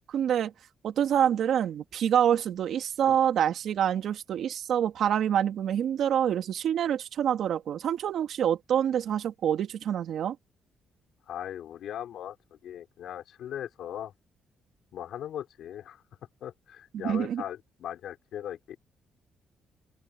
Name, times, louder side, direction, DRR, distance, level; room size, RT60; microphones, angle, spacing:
voice 1, 0.1-0.5 0.8-10.4 16.9-17.4, right 9 dB, 70° right, 2.4 m, -26 dB
voice 2, 11.3-12.4 12.6-14.1 14.9-16.0 16.4-18.8, left 10 dB, 75° left, 3.2 m, -39 dB
open air
cardioid pair, 90°, 0 cm